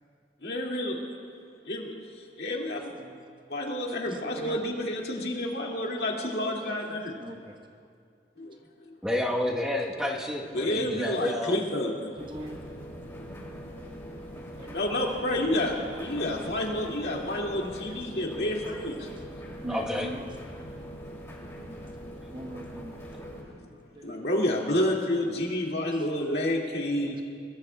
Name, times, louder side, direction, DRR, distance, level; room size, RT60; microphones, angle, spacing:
voice 1, 0.4-1.0 1.7-2.0 2.4-2.9 3.5-7.1 8.4-8.5 8.9-9.0 10.5-12.1 14.6-19.1 23.2-23.3 24.0-27.2, left 1 dB, 65° left, -1 dB, 2.1 m, -29 dB
voice 2, 2.9-3.2 4.1-4.6 5.6-7.6 8.4-8.7 12.2-12.6 13.1-14.1 14.3-16.7 17.2-20.3 21.6-23.0 23.6-24.4 25.9-26.1 27.0-27.2, right 1 dB, 25° right, 3 dB, 0.9 m, -45 dB
voice 3, 9.0-11.6 19.7-20.1, left 1 dB, 5° right, -2 dB, 1.0 m, -29 dB
sound 1, 12.2-23.4, equal, 15° left, 2.4 m, -42 dB
22.0 x 20.0 x 2.2 m, 2.3 s
head